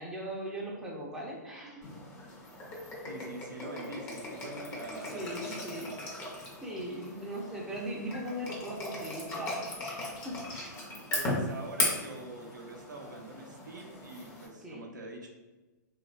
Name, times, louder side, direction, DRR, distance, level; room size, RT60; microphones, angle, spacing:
voice 1, 0.0-1.9 5.0-5.9 6.6-10.7 14.6-15.0, equal, 5° right, -4 dB, 0.5 m, -39 dB
sound 1, 1.8-14.5, left 1 dB, 25° left, 0.7 m, -38 dB
voice 2, 3.0-5.9 11.1-15.3, right 2 dB, 85° right, 1 dB, 0.6 m, -44 dB
3.0 x 2.2 x 2.4 m, 1.2 s
hypercardioid pair, 120°, 10 cm